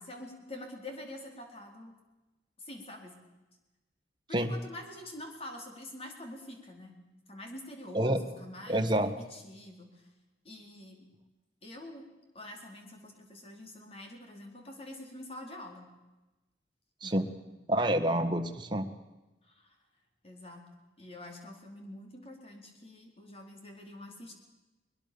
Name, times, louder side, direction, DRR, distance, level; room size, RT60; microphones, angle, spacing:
voice 1, 0.0-1.9 2.6-3.2 4.3-6.9 7.3-10.1 10.4-11.0 11.6-12.1 12.3-15.9 17.0-17.2 19.4-19.8 20.2-20.7 21.0-24.3, left 1 dB, 35° left, 2 dB, 4.2 m, -46 dB
voice 2, 8.7-9.1 17.0-17.2 17.7-18.9, right 1 dB, 25° right, 6 dB, 1.6 m, -28 dB
22.0 x 21.5 x 7.0 m, 1.1 s
head